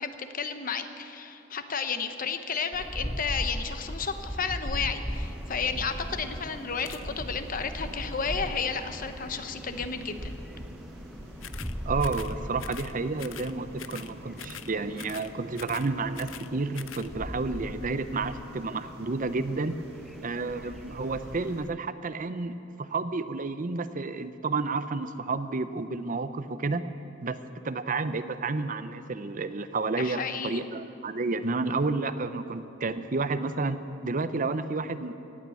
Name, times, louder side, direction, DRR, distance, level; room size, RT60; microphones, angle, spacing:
voice 1, 0.0-10.4 30.0-30.6, left 5 dB, 45° left, 8 dB, 0.9 m, -32 dB
sound 1, 2.7-21.7, equal, ahead, 0.4 m, -39 dB
sound 2, 5.1-21.6, right 1 dB, 60° right, 2.0 m, -48 dB
sound 3, 6.8-7.0 11.4-11.7 12.0-12.3 12.6-12.9 13.2-13.5 13.8-14.1 14.4-14.7 15.0-15.3 15.5-16.5 16.7-17.1, left 11 dB, 90° left, 0.5 m, -43 dB
voice 2, 11.9-19.7 20.2-26.8 27.2-33.8 34.0-35.1, right 3 dB, 45° right, 11 dB, 0.6 m, -31 dB
18.0 x 8.6 x 8.5 m, 2.9 s
head